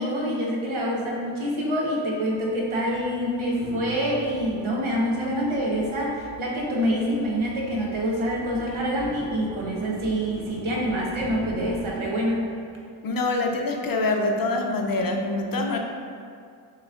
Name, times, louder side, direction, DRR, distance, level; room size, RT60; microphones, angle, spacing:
voice 1, 0.0-12.5, equal, 80° right, -3 dB, 1.0 m, -26 dB
sound 1, 1.1-1.2 2.2-12.8, right 1 dB, 35° right, 0.7 m, -43 dB
voice 2, 13.0-15.8, left 2 dB, 45° left, 2 dB, 0.5 m, -25 dB
6.6 x 3.1 x 2.4 m, 2.3 s
wide cardioid pair, 70°, 48 cm